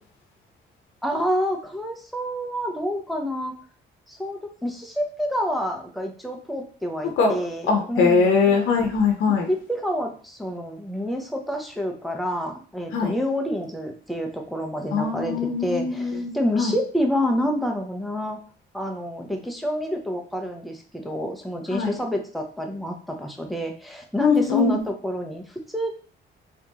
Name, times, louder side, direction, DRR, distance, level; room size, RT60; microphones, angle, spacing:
voice 1, 1.0-3.5 4.1-8.4 9.5-18.4 18.7-25.9, equal, ahead, 2 dB, 0.7 m, -28 dB
voice 2, 7.7-9.5 12.9-13.1 14.9-16.7 21.7-22.0 24.2-24.8, left 5 dB, 80° left, 2 dB, 0.7 m, -22 dB
2.9 x 2.7 x 3.5 m, 0.41 s
cardioid pair, 90°, 20 cm